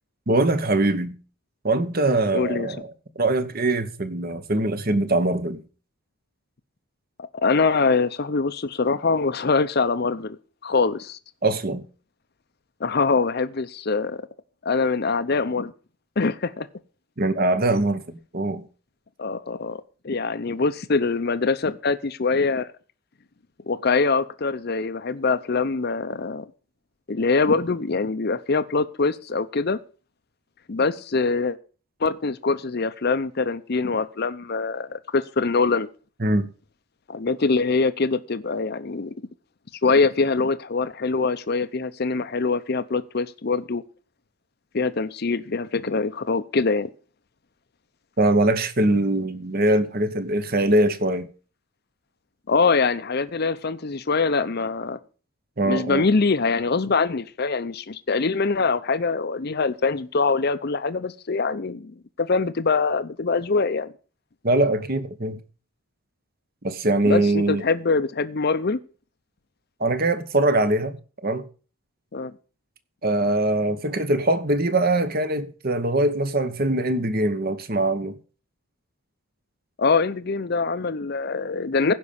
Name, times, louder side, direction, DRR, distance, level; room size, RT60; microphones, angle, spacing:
voice 1, 0.3-1.1 1.6-2.9 3.2-5.6 11.4-11.8 17.2-18.7 36.2-36.5 48.2-51.3 55.6-56.0 64.4-65.4 66.6-67.6 69.8-71.0 71.2-71.4 73.0-78.2, right 2 dB, 45° right, 1.1 m, -22 dB
voice 2, 2.3-2.7 7.4-11.2 12.8-14.2 14.6-15.7 16.2-16.7 19.2-19.8 20.0-22.7 23.7-26.5 27.1-29.8 30.7-31.6 32.0-35.9 37.1-39.1 39.8-43.8 44.7-46.9 52.5-55.0 55.6-63.9 67.0-68.8 72.1-72.3 79.8-81.9, left 4 dB, 50° left, 0.6 m, -23 dB
16.0 x 5.4 x 7.0 m
head